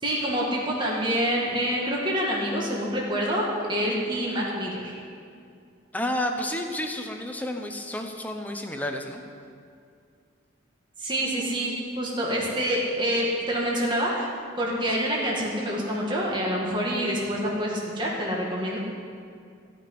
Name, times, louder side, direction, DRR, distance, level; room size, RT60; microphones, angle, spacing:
voice 1, 0.0-4.9 11.0-14.3 14.6-18.8, equal, 25° right, -4 dB, 2.1 m, -27 dB
voice 2, 5.9-9.2, left 1 dB, 10° left, 4 dB, 0.9 m, -30 dB
16.5 x 6.1 x 9.8 m, 2.3 s
head